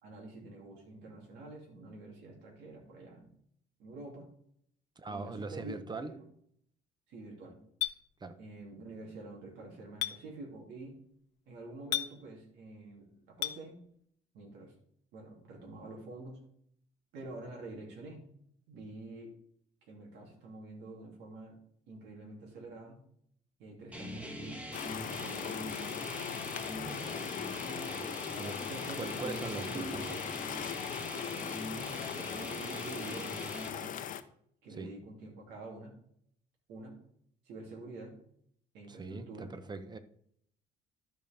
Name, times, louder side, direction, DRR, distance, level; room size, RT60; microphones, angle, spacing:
voice 1, 0.0-3.4 3.8-4.3 5.1-6.3 7.1-7.6 8.4-11.0 11.5-13.8 14.3-14.7 15.1-16.4 17.1-18.2 18.7-19.4 19.9-21.6 21.9-23.0 23.6-24.7 25.1-26.0 26.3-26.6 26.9-27.4 27.8-28.2 28.6-30.3 31.1-34.0 34.6-35.9 36.7-37.0 37.4-38.2 38.7-39.5, right 2 dB, 85° right, 2.8 m, -47 dB
voice 2, 5.0-6.1 8.2-8.4 28.4-28.6 29.0-30.0 34.8-34.9 38.9-40.0, right 3 dB, 25° right, 0.9 m, -41 dB
Chink clink, 7.8-8.0 10.0-10.2 11.9-12.1 13.4-13.6, left 15 dB, 85° left, 0.7 m, -32 dB
sound 1, 23.9-33.7, equal, 10° right, 1.7 m, -42 dB
sound 2, 24.7-34.2, left 10 dB, 55° left, 0.7 m, -40 dB
13.0 x 5.2 x 3.5 m
cardioid pair, 110°, 17 cm